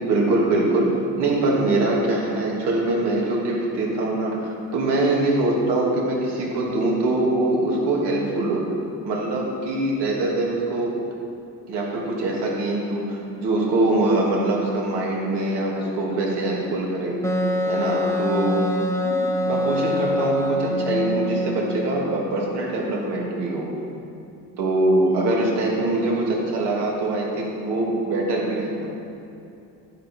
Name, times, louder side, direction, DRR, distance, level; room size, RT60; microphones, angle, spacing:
voice 1, 0.0-8.7 9.0-10.9 11.7-17.1 17.6-18.7 19.0-19.2 19.5-23.7 24.6-28.9, right 2 dB, 80° right, -3 dB, 2.9 m, -23 dB
Wind instrument woodwind instrument, 17.2-21.9, left 1 dB, 5° left, 1.0 m, -24 dB
12.0 x 10.0 x 4.8 m, 2.7 s
cardioid pair, 105°, 40 cm